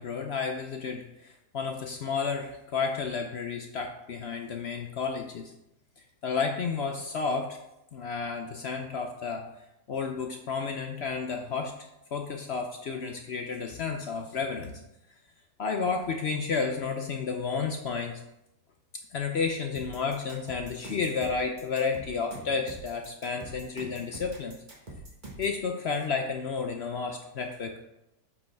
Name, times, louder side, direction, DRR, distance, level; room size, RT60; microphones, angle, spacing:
voice 1, 0.0-5.5 6.0-7.6 7.9-9.5 9.9-11.7 12.1-14.7 15.6-18.2 19.1-24.6 25.4-27.8, left 5 dB, 65° left, 4 dB, 0.6 m, -31 dB
sound 1, 19.7-25.6, right 1 dB, 30° right, 1.6 m, -44 dB
8.2 x 5.3 x 3.5 m, 0.85 s
omnidirectional pair, 1.8 m